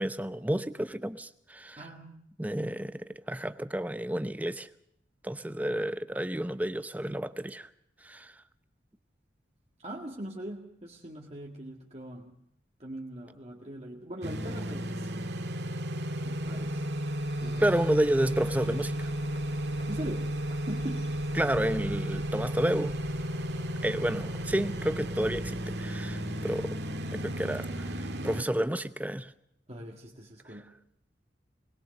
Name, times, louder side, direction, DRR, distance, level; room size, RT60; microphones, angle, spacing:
voice 1, 0.0-1.8 2.4-4.7 5.2-7.7 8.0-8.3 17.6-19.1 21.3-22.9 23.8-26.8 27.1-27.9 28.2-29.3, right 1 dB, 10° right, 12 dB, 0.7 m, -30 dB
voice 2, 1.8-2.3 9.8-12.4 12.8-15.2 16.2-16.8 17.4-17.8 19.9-20.3 20.7-21.1 29.7-30.7, right 1 dB, 35° right, -1 dB, 1.9 m, -41 dB
sound 1, 14.2-28.4, right 1 dB, 65° right, 2.0 m, -33 dB
Bird, 15.7-27.1, equal, 55° left, 4.0 m, -48 dB
21.5 x 21.0 x 6.6 m, 0.73 s
head